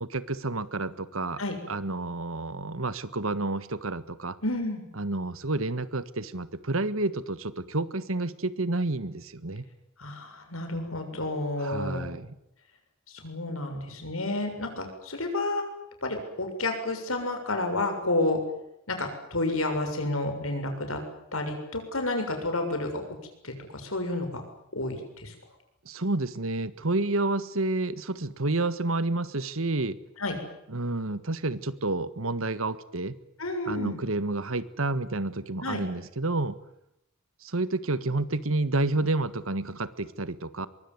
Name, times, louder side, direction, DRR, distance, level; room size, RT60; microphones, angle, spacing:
voice 1, 0.0-1.4 1.7-4.4 5.0-9.6 11.6-12.3 25.8-30.0 30.7-33.1 33.7-36.6 37.4-40.7, right 2 dB, 75° right, 14 dB, 1.6 m, -29 dB
voice 2, 4.4-4.8 10.0-12.1 13.1-15.6 16.0-18.4 18.9-21.0 21.3-23.0 23.4-24.4 24.7-25.3 30.2-30.4 33.4-34.0 35.6-35.8, left 2 dB, 80° left, 6 dB, 7.0 m, -30 dB
23.5 x 23.0 x 9.7 m, 0.82 s
head